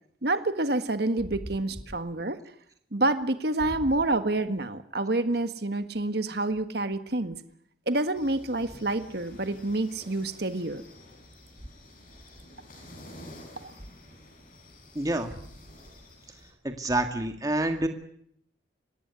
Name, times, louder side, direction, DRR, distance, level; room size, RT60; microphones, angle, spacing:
voice 1, 0.2-2.4 2.9-7.4 7.9-10.8, right 2 dB, 55° right, 9 dB, 1.6 m, -28 dB
sound 1, 8.1-16.5, left 1 dB, 45° left, 7.6 m, -50 dB
voice 2, 15.0-15.3 16.6-17.9, right 1 dB, 20° right, 5 dB, 1.9 m, -27 dB
25.5 x 19.0 x 9.8 m, 0.70 s
head